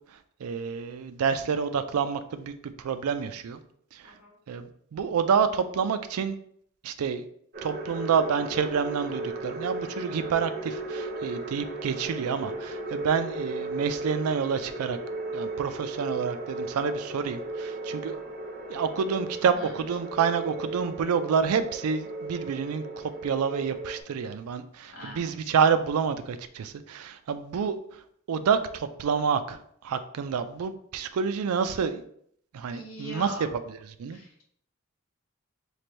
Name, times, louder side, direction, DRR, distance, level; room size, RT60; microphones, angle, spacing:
voice 1, 0.4-3.6 3.9-4.0 4.5-6.4 6.8-7.2 7.6-15.0 15.3-18.2 18.7-27.8 28.3-29.6 29.8-32.0 32.5-33.4 33.7-34.2, right 6 dB, 90° right, 11 dB, 0.4 m, -28 dB
sound 1, 7.5-24.0, right 2 dB, 45° right, 0.6 m, -36 dB
voice 2, 24.9-25.5 32.7-33.5 34.1-34.4, equal, 70° left, -1 dB, 1.2 m, -42 dB
3.3 x 2.5 x 4.2 m, 0.66 s
head